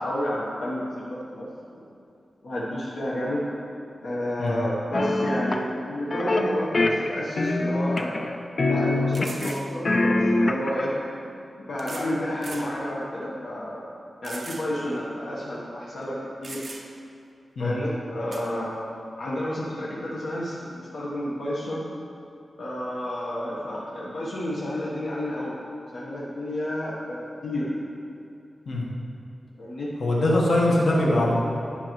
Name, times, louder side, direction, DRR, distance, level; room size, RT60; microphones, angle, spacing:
voice 1, 0.0-1.9 2.4-3.4 4.0-8.3 8.6-11.0 11.6-13.9 14.2-16.6 17.6-18.8 19.2-21.8 22.6-25.6 25.9-27.7 29.6-29.9, left 1 dB, 70° left, -7 dB, 1.0 m, -31 dB
sound 1, 4.9-5.6 6.1-6.5 6.7-8.3 8.6-9.5 9.8-10.8, left 2 dB, 35° left, 0.4 m, -23 dB
sound 2, 7.4-7.5 8.0-8.1 9.1-9.7 10.8-10.9 11.8-12.1 12.4-12.7 13.2-13.3 14.2-14.7 15.0-15.1 16.0-16.1 16.4-17.1 18.3-18.5, right 3 dB, 45° right, 0.6 m, -40 dB
voice 2, 30.0-31.4, left 1 dB, 85° left, -4 dB, 1.3 m, -21 dB
10.5 x 5.6 x 3.0 m, 2.6 s
wide cardioid pair, 175°, 0 cm